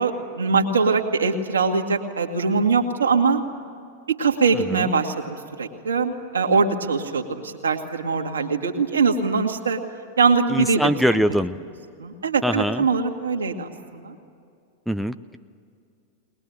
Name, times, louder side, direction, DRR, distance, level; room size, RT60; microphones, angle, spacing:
voice 1, 0.0-3.4 4.1-9.8 10.2-10.9 12.0-14.1, right 4 dB, 70° right, 4 dB, 2.0 m, -22 dB
voice 2, 10.5-11.6 12.4-12.8 14.9-15.4, equal, ahead, 8 dB, 0.6 m, -22 dB
21.5 x 21.0 x 9.3 m, 2.4 s
figure-of-eight pair, 90°, 0 cm